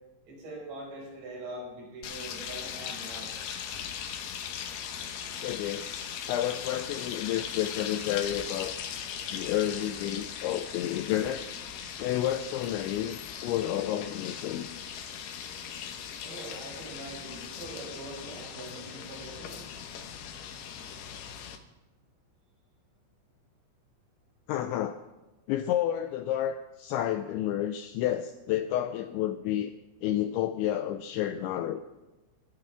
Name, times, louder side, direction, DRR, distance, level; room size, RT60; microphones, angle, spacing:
voice 1, 0.3-3.3 16.2-19.7, right 1 dB, 75° right, -3 dB, 8.1 m, -43 dB
sound 1, 2.0-21.6, left 8 dB, 70° left, 2.7 m, -39 dB
voice 2, 5.4-8.8 9.3-11.4 12.0-14.7 24.5-25.0 25.5-29.7 30.0-31.8, left 12 dB, 85° left, 8 dB, 2.6 m, -30 dB
26.5 x 14.0 x 3.5 m, 1.1 s
omnidirectional pair, 5.8 m